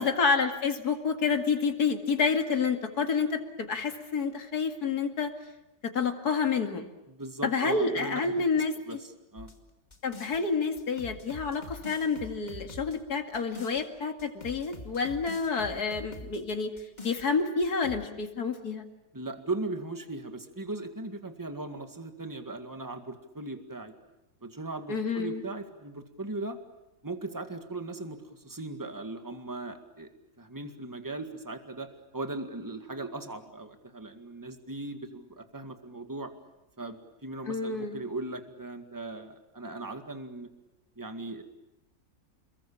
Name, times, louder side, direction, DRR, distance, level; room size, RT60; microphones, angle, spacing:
voice 1, 0.0-5.3 5.9-6.9 7.4-9.0 10.0-16.7 17.0-18.8 24.9-25.4 37.5-38.0, left 5 dB, 70° left, 6 dB, 2.8 m, -29 dB
voice 2, 7.1-9.5 19.1-23.9 24.4-26.6 27.0-30.1 30.4-36.3 36.8-40.5 41.0-41.4, right 2 dB, 10° right, 7 dB, 2.0 m, -38 dB
sound 1, 9.4-10.4 10.8-13.8 14.2-16.4 16.8-17.3 17.6-18.1, left 2 dB, 25° left, 2.4 m, -45 dB
28.5 x 22.5 x 8.7 m, 0.92 s
omnidirectional pair, 1.7 m